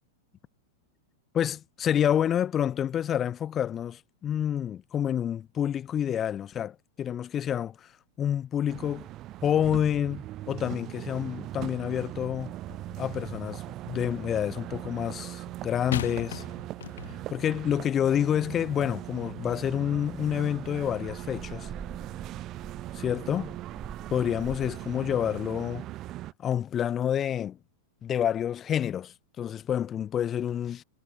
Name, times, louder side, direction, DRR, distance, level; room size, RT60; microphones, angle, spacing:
voice 1, 1.3-7.9 8.2-9.1 9.4-12.5 13.0-16.4 17.3-21.7 22.9-23.6 24.1-25.9 26.4-27.6 28.0-30.8, left 9 dB, 30° left, 0.6 m, -28 dB
sound 1, 8.7-26.3, right 15 dB, 40° right, 0.5 m, -40 dB
sound 2, 12.7-13.5 15.9-17.4 18.2-18.4, left 10 dB, 80° left, 0.7 m, -38 dB
sound 3, 18.8-25.2, right 5 dB, 15° right, 4.6 m, -47 dB
hypercardioid pair, 110°, 0 cm